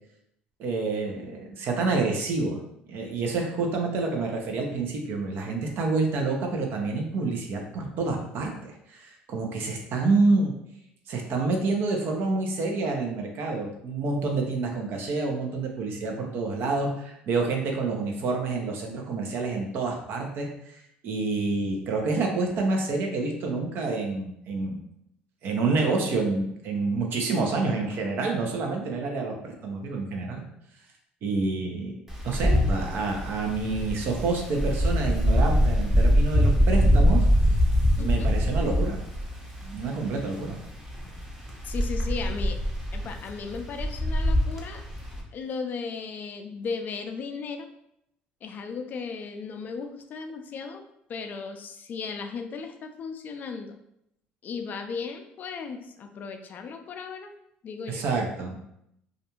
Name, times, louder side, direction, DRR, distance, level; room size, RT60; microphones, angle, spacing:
voice 1, 0.6-2.6 2.9-10.5 11.1-20.8 21.0-24.8 25.4-30.5 31.2-31.9 32.2-37.2 38.0-39.0 39.6-40.6 57.9-58.6, right 3 dB, 60° right, 2 dB, 0.6 m, -28 dB
Wind, 32.1-45.2, equal, 10° right, 0.7 m, -24 dB
voice 2, 38.0-38.3 41.6-42.6 42.9-44.8 45.3-47.7 48.4-53.8 54.4-57.3 57.6-58.0, left 5 dB, 50° left, 6 dB, 0.4 m, -36 dB
2.5 x 2.2 x 2.9 m, 0.77 s
supercardioid pair, 90°, 4 cm